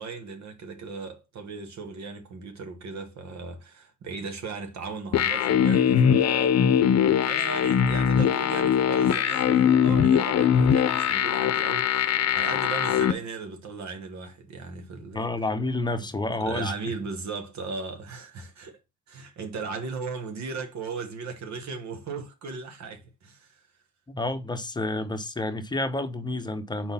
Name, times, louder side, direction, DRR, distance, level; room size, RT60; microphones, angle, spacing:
voice 1, 0.0-6.6 7.3-15.3 16.0-16.1 16.4-18.8 19.1-23.6, right 4 dB, 65° right, 1.3 m, -37 dB
sound 1, 5.1-13.1, left 8 dB, 55° left, 0.7 m, -21 dB
voice 2, 15.1-16.7 24.1-26.9, left 2 dB, 15° left, 0.9 m, -29 dB
4.5 x 3.9 x 5.6 m
cardioid pair, 90°, 30 cm